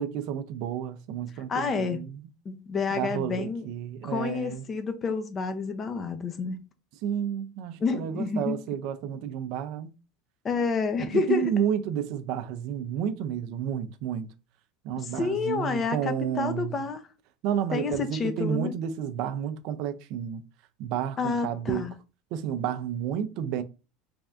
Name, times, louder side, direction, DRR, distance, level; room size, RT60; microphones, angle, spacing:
voice 1, 0.0-2.3 2.9-4.6 7.0-9.9 11.1-14.3 14.8-16.8 17.4-20.4 20.8-21.9 22.3-23.6, right 9 dB, 60° right, 0.5 m, -31 dB
voice 2, 1.5-2.0 2.5-3.7 4.0-6.6 7.8-8.5 10.4-11.5 15.0-17.0 17.7-18.7 21.2-21.9, left 4 dB, 30° left, 0.6 m, -29 dB
3.4 x 2.5 x 3.3 m
supercardioid pair, 130°, 0 cm